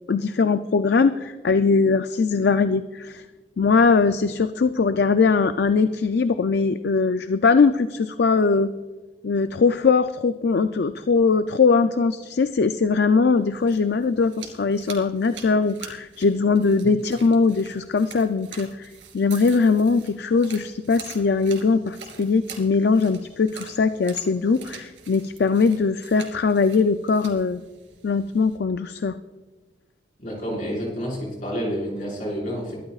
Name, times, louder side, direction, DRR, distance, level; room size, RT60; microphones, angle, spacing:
voice 1, 0.1-3.2 3.6-8.7 9.2-27.6 28.0-29.2, left 4 dB, 60° left, 10 dB, 0.4 m, -21 dB
sound 1, 13.4-28.6, right 7 dB, 80° right, 2.9 m, -45 dB
voice 2, 30.2-32.8, equal, 45° left, -3 dB, 5.2 m, -29 dB
23.0 x 13.0 x 2.4 m, 1.2 s
head